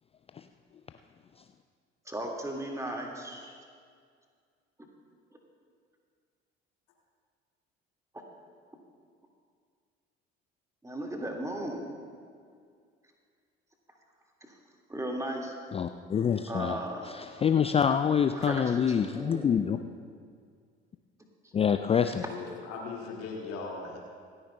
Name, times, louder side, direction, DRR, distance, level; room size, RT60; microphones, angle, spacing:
voice 1, 2.1-3.6 10.8-11.9 14.4-14.6 14.9-15.6 16.5-17.1 18.3-19.7 21.4-21.5, right 1 dB, 10° right, 0 dB, 1.9 m, -36 dB
voice 2, 15.7-16.8 17.1-19.8 21.5-22.2, left 7 dB, 20° left, 8 dB, 0.4 m, -26 dB
voice 3, 22.3-24.0, left 4 dB, 50° left, -2 dB, 2.0 m, -39 dB
26.5 x 9.5 x 2.2 m, 2.1 s
figure-of-eight pair, 55°, 29 cm